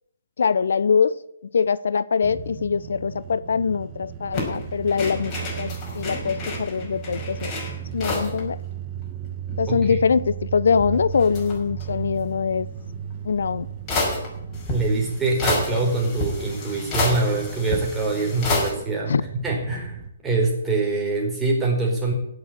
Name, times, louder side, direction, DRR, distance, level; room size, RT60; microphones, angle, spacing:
voice 1, 0.4-1.2 1.5-7.5 7.9-8.6 9.6-12.7 13.2-13.7 19.1-19.2, left 6 dB, 65° left, 19 dB, 0.4 m, -23 dB
sound 1, 2.2-20.1, right 9 dB, 30° right, 1.3 m, -36 dB
sound 2, 4.3-8.4 8.7-8.8 9.0-10.1 10.7-12.0 13.1-13.2 13.9-18.7, left 2 dB, 25° left, 5.2 m, -30 dB
voice 2, 9.7-10.0 14.7-19.1 19.4-20.0 20.2-22.1, right 3 dB, 10° right, -1 dB, 4.4 m, -24 dB
15.5 x 6.7 x 8.6 m, 0.80 s
figure-of-eight pair, 130°, 0 cm